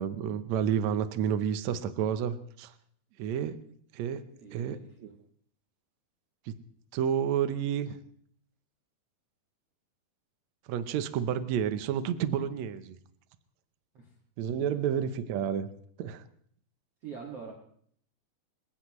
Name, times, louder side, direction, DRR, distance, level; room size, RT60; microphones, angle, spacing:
voice 1, 0.0-2.7 3.2-3.7 3.9-4.2 4.5-5.2 6.5-6.6 6.9-8.0 10.7-13.0 14.4-15.7 16.0-16.2, right 8 dB, 80° right, 11 dB, 1.6 m, -30 dB
voice 2, 4.4-5.1 13.9-14.1 17.0-17.5, right 6 dB, 45° right, -1 dB, 2.6 m, -44 dB
26.0 x 16.0 x 3.1 m, 0.63 s
omnidirectional pair, 4.3 m